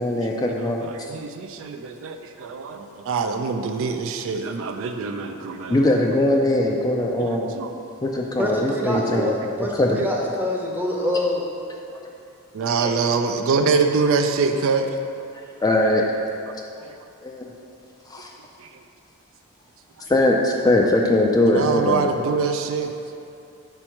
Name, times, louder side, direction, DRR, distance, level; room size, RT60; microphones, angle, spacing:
voice 1, 0.0-0.9 5.7-7.6 8.0-9.4 9.8-10.0 12.8-12.9 15.6-16.0 17.2-17.5 18.1-18.3 20.1-22.1, left 1 dB, 15° left, 0 dB, 0.3 m, -20 dB
voice 2, 0.9-5.9 7.2-7.7 8.9-9.3 12.5-14.9 16.8-17.0 18.6-18.7 21.4-22.9, right 4 dB, 65° right, 6 dB, 0.4 m, -24 dB
voice 3, 8.4-11.4, left 1 dB, 10° right, -2 dB, 0.7 m, -26 dB
4.5 x 4.3 x 5.7 m, 2.6 s
head